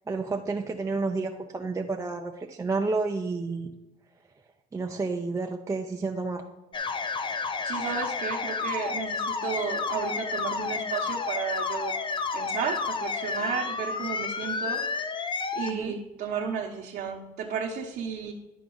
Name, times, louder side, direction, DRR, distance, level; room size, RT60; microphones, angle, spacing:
voice 1, 0.1-3.7 4.7-6.5 15.7-15.9, right 3 dB, 20° right, 2 dB, 0.5 m, -30 dB
sound 1, 6.7-15.7, left 4 dB, 30° left, 0.6 m, -31 dB
voice 2, 7.6-11.9 12.3-14.8 15.5-18.3, right 6 dB, 65° right, -2 dB, 1.0 m, -33 dB
11.0 x 4.6 x 3.9 m, 1.0 s
cardioid pair, 110°, 17 cm